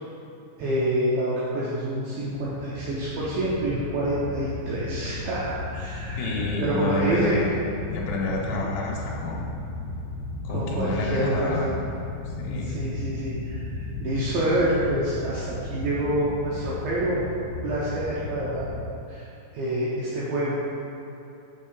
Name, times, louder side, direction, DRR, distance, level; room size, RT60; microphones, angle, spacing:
voice 1, 0.6-7.4 10.5-11.8 12.7-17.2 17.6-18.7 19.1-19.2 19.5-20.6, right 1 dB, 75° right, -8 dB, 2.4 m, -27 dB
sound 1, 2.3-18.8, left 2 dB, 50° left, 1.9 m, -35 dB
voice 2, 6.2-7.6 7.9-9.5 10.4-11.7 12.3-12.8, left 2 dB, 80° left, -3 dB, 3.3 m, -29 dB
6.5 x 5.4 x 5.5 m, 2.9 s
omnidirectional pair, 5.3 m